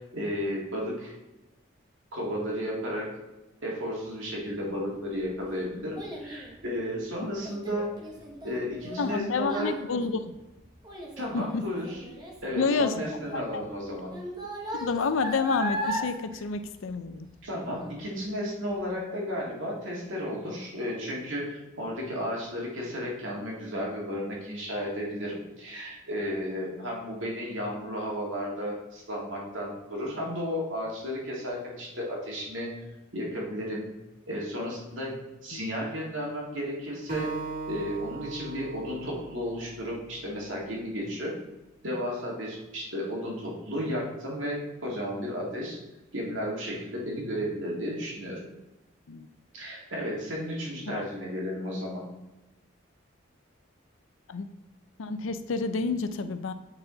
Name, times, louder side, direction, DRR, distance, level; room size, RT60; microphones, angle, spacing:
voice 1, 0.1-1.1 2.1-3.1 3.6-7.9 8.4-9.7 11.2-12.0 12.4-14.1 17.4-32.7 33.1-33.9 34.3-35.2 35.4-37.3 37.7-41.3 41.8-45.8 46.1-48.4 49.5-52.0, equal, 85° right, -3 dB, 2.0 m, -33 dB
Child speech kid speaking, 4.8-17.4 17.8-18.2 18.7-18.8, equal, 20° right, 1.0 m, -38 dB
voice 2, 9.0-10.4 11.3-11.7 12.6-13.0 13.3-13.6 14.7-17.3 35.5-35.6 49.1-49.3 50.9-51.1 54.3-54.5 55.0-56.5, left 4 dB, 90° left, 10 dB, 0.5 m, -29 dB
Acoustic guitar, 37.1-40.4, right 3 dB, 55° right, 2.0 m, -39 dB
9.0 x 4.1 x 3.9 m, 1.0 s
head